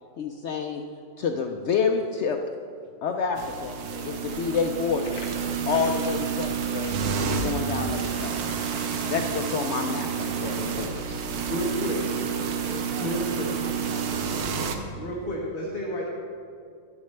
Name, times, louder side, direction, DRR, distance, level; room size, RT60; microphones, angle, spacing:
voice 1, 0.2-0.8 1.2-2.4 3.0-3.8 4.0-5.2 5.7-8.5 9.1-11.2, left 5 dB, 65° left, 4 dB, 0.7 m, -28 dB
Telephone, 3.2-7.6 8.0-11.5 11.7-14.3 14.8-15.3, left 1 dB, 15° left, 0.9 m, -49 dB
sound 1, 3.4-14.8, right 6 dB, 85° right, 1.3 m, -29 dB
sound 2, 5.0-11.1, left 4 dB, 90° left, 1.5 m, -49 dB
voice 2, 11.5-12.0 13.0-13.5 15.0-16.0, equal, 40° left, -3 dB, 1.2 m, -30 dB
voice 3, 12.2-13.3 13.6-14.6 15.2-15.7, right 1 dB, 45° right, 1 dB, 1.1 m, -42 dB
11.0 x 10.5 x 3.2 m, 2.4 s
omnidirectional pair, 1.5 m